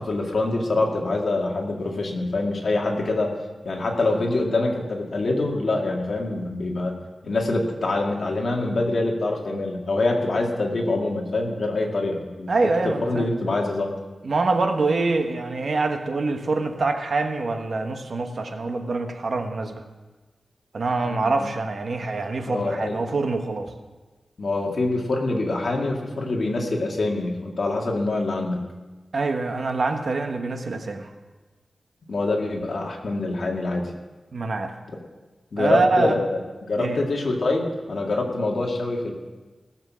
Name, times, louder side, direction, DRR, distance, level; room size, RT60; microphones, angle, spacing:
voice 1, 0.0-3.3 3.6-7.0 7.2-12.5 12.8-13.9 21.0-21.5 22.5-23.0 24.4-28.6 32.1-33.8 35.5-36.4 36.7-39.1, left 2 dB, 60° left, 0 dB, 2.0 m, -25 dB
voice 2, 12.5-13.3 14.2-19.8 20.7-23.7 29.1-31.1 34.3-34.7 35.6-36.2 36.8-37.0, right 3 dB, 60° right, 5 dB, 1.2 m, -25 dB
17.5 x 7.4 x 6.2 m, 1.3 s
wide cardioid pair, 130°, 0 cm